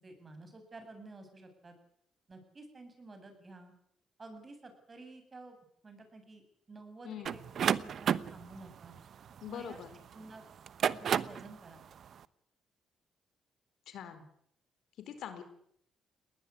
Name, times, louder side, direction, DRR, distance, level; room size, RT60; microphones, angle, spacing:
voice 1, 0.0-1.7 2.3-3.7 4.2-5.6 5.8-7.4 7.8-9.0 9.5-9.8 10.1-10.4 10.8-11.8, right 2 dB, 30° right, 7 dB, 7.9 m, -51 dB
voice 2, 7.0-7.4 9.4-9.9 13.9-14.2 15.0-15.4, left 9 dB, 75° left, 9 dB, 4.3 m, -43 dB
sound 1, 7.2-10.0 10.6-11.5, right 8 dB, 60° right, 1.0 m, -31 dB
20.5 x 19.5 x 10.0 m, 0.67 s
cardioid pair, 90°, 0 cm